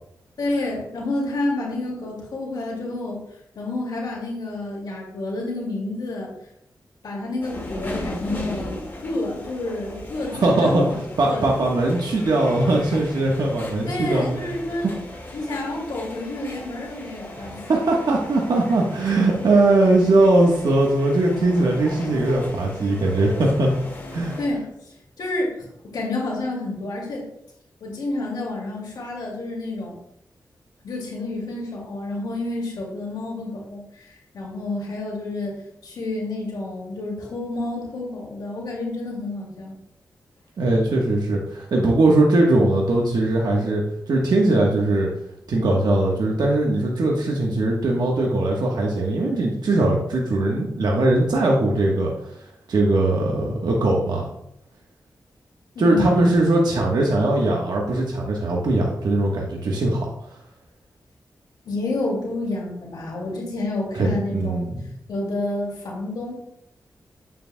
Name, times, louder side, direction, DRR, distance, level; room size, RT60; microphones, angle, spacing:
voice 1, 0.4-3.2 3.6-6.3 7.0-11.5 13.8-14.9 15.3-17.7 24.4-25.7 25.9-27.2 27.8-30.0 30.8-35.5 35.8-39.7 55.7-56.3 61.6-64.6 65.1-66.3, left 2 dB, 85° left, -3 dB, 2.3 m, -29 dB
sound 1, 7.4-24.5, left 1 dB, 30° left, 1.9 m, -37 dB
voice 2, 10.4-14.3 14.8-14.9 17.3-23.7 24.1-24.3 40.6-45.1 45.5-52.3 52.7-54.3 55.8-60.1 63.9-64.7, right 2 dB, 75° right, -1 dB, 1.2 m, -20 dB
8.7 x 7.5 x 2.2 m, 0.77 s
wide cardioid pair, 85°, 7 cm